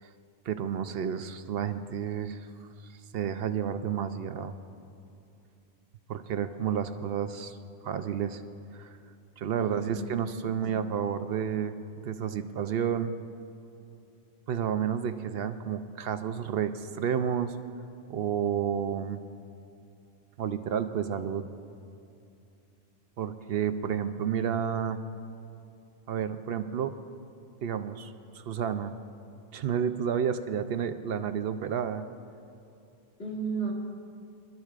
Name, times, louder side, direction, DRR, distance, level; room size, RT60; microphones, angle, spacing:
voice 1, 0.5-2.5 3.1-4.5 6.1-7.6 7.8-8.4 8.7-9.0 9.4-11.7 12.0-13.2 14.5-17.5 18.1-19.2 20.4-21.4 23.2-25.0 26.1-26.9 27.6-28.9 29.5-32.0, right 8 dB, 65° right, 10 dB, 0.8 m, -30 dB
voice 2, 9.6-10.4 10.6-10.9 33.2-33.7, right 4 dB, 80° left, -5 dB, 2.7 m, -35 dB
25.5 x 12.0 x 2.4 m, 2.6 s
omnidirectional pair, 1.1 m